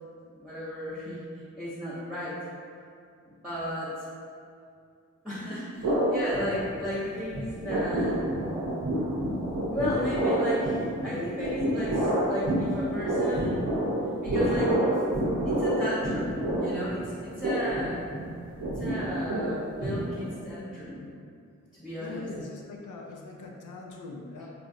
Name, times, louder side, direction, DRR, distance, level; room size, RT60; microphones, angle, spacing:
voice 1, 0.3-1.2 1.6-2.4 3.4-4.0 5.2-8.2 9.7-13.7 14.2-14.8 15.4-18.0 18.6-21.1 21.7-22.3, left 1 dB, ahead, -10 dB, 0.8 m, -34 dB
sound 1, 5.8-7.1 7.3-20.5, right 1 dB, 75° right, 0.7 m, -28 dB
voice 2, 21.9-24.5, left 3 dB, 85° left, 0 dB, 0.5 m, -41 dB
3.3 x 2.6 x 2.5 m, 2.4 s
cardioid pair, 50°, 30 cm